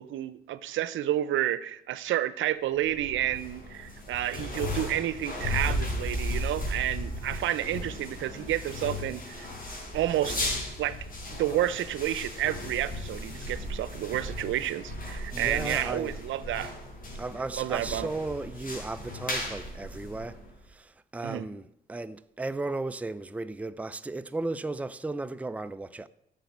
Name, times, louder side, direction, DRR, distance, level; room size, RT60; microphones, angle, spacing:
voice 1, 0.0-9.5 9.9-10.4 10.8-11.0 11.4-16.7 17.6-18.1 21.2-21.5, right 13 dB, 75° right, 0.8 m, -30 dB
sound 1, 2.8-20.7, left 1 dB, 45° left, 4.6 m, -36 dB
voice 2, 15.3-16.2 17.2-20.4 20.7-26.1, right 2 dB, 5° right, 0.5 m, -35 dB
11.5 x 6.9 x 9.3 m
cardioid pair, 90°, 20 cm